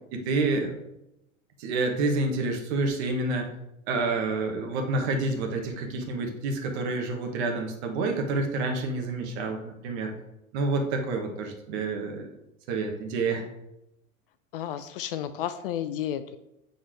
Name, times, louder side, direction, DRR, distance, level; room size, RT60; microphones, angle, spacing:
voice 1, 0.1-0.7 1.6-3.5 3.9-10.1 10.5-12.3 12.7-13.4, right 3 dB, 50° right, 3 dB, 1.5 m, -28 dB
voice 2, 14.5-16.4, left 10 dB, 45° left, 12 dB, 0.4 m, -32 dB
6.7 x 3.9 x 4.7 m, 0.87 s
figure-of-eight pair, 90°, 42 cm